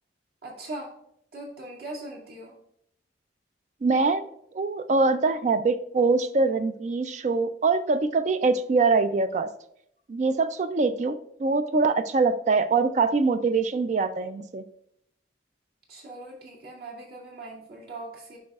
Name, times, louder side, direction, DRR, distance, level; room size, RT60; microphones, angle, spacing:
voice 1, 0.4-0.9 1.3-2.5 15.9-18.4, right 2 dB, 60° right, -3 dB, 2.1 m, -40 dB
voice 2, 3.8-9.5 10.1-14.6, right 4 dB, 40° right, 11 dB, 0.3 m, -24 dB
10.0 x 5.2 x 2.3 m, 0.74 s
head